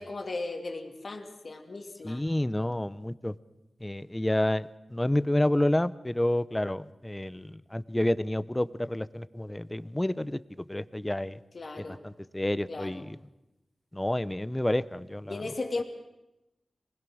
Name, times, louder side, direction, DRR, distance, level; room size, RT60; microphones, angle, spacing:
voice 1, 0.0-2.2 11.5-12.0 12.7-13.0 15.3-15.8, left 3 dB, 60° left, 4 dB, 2.5 m, -36 dB
voice 2, 2.0-3.3 3.8-10.4 10.7-11.4 11.8-13.2 13.9-15.4, left 1 dB, 15° left, 16 dB, 0.8 m, -29 dB
26.5 x 20.5 x 6.3 m, 0.94 s
wide cardioid pair, 65°, 0 cm